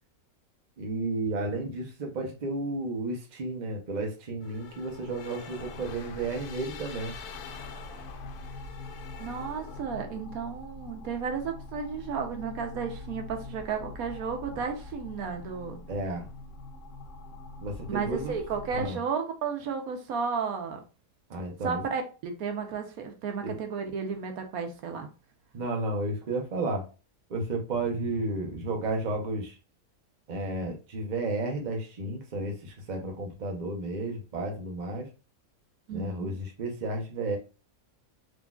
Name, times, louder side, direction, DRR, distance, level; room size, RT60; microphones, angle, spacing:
voice 1, 0.8-7.1 15.9-16.3 17.6-18.3 18.7-19.0 21.3-21.8 23.4-23.6 25.5-26.9 27.3-29.6 30.3-35.1 35.9-37.4, right 2 dB, 40° right, 0.7 m, -32 dB
sound 1, 4.4-9.8, left 7 dB, 90° left, 1.1 m, -46 dB
sound 2, 5.6-18.9, left 2 dB, 65° left, 0.9 m, -44 dB
voice 2, 9.2-15.8 17.9-20.8 21.6-25.1 35.9-36.3, right 6 dB, 80° right, 1.1 m, -33 dB
3.7 x 3.0 x 2.3 m
omnidirectional pair, 1.6 m